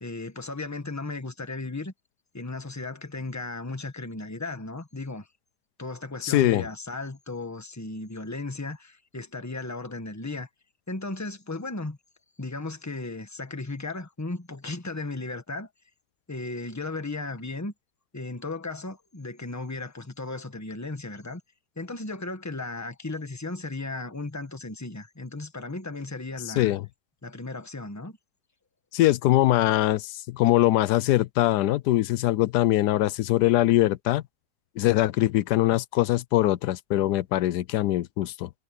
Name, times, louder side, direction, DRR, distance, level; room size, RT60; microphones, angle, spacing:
voice 1, 0.0-1.9 2.3-5.3 5.8-10.5 10.9-12.0 12.4-15.7 16.3-17.7 18.1-21.4 21.8-26.8 27.2-28.2, left 2 dB, 10° left, 1.3 m, -35 dB
voice 2, 6.2-6.7 26.5-26.8 28.9-34.2 34.8-38.5, left 15 dB, 85° left, 1.2 m, -22 dB
omnidirectional pair, 1.7 m